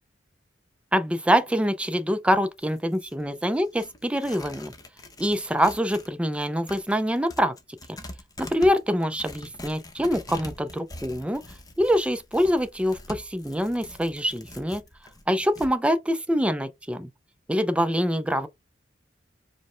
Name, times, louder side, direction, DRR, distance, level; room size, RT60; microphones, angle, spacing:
voice 1, 0.9-4.7 5.2-7.6 8.4-11.4 11.8-14.8 15.3-17.1 17.5-18.5, equal, 5° right, 0.4 m, -25 dB
Tearing, 2.4-6.1 6.4-15.7, left 1 dB, 20° left, 0.8 m, -44 dB
5.0 x 2.1 x 4.3 m
head